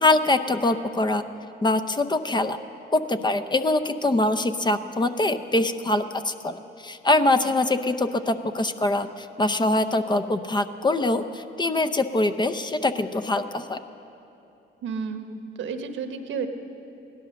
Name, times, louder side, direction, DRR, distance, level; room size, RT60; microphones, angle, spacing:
voice 1, 0.0-1.2 1.6-2.6 2.9-13.8, left 2 dB, 20° left, 10 dB, 0.6 m, -23 dB
voice 2, 14.8-16.5, right 5 dB, 75° right, 7 dB, 1.1 m, -32 dB
16.5 x 11.5 x 6.4 m, 2.9 s
cardioid pair, 90°, 20 cm